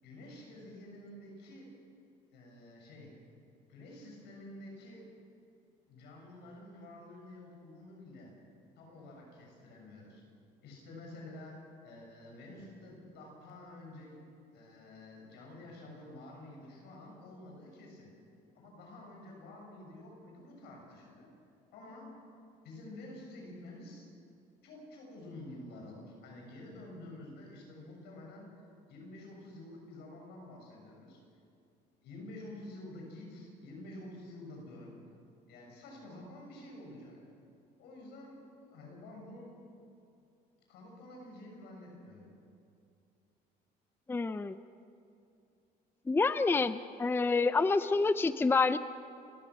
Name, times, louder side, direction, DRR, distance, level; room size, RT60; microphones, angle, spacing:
voice 1, 0.0-1.7 2.3-3.1 3.7-5.1 5.9-8.3 8.8-10.2 10.6-14.2 14.5-18.1 18.6-21.3 21.7-22.1 22.6-24.1 24.6-28.5 28.9-31.2 32.0-35.0 35.5-37.2 37.8-38.4 38.7-39.6 40.7-42.3, left 1 dB, 85° left, 0 dB, 7.1 m, -49 dB
voice 2, 44.1-44.5 46.1-48.8, left 4 dB, 15° left, 13 dB, 0.5 m, -28 dB
29.0 x 14.5 x 6.3 m, 2.5 s
cardioid pair, 110°, 17 cm